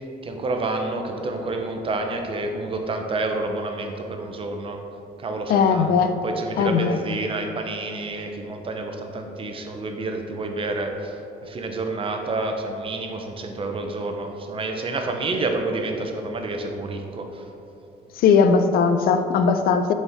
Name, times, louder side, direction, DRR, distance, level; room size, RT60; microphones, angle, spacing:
voice 1, 0.2-4.8 5.2-17.5, right 2 dB, 30° right, 4 dB, 0.7 m, -29 dB
voice 2, 5.5-6.1 6.6-6.9 18.2-19.9, left 6 dB, 60° left, 8 dB, 0.4 m, -18 dB
6.7 x 4.3 x 3.5 m, 2.9 s
cardioid pair, 110°, 17 cm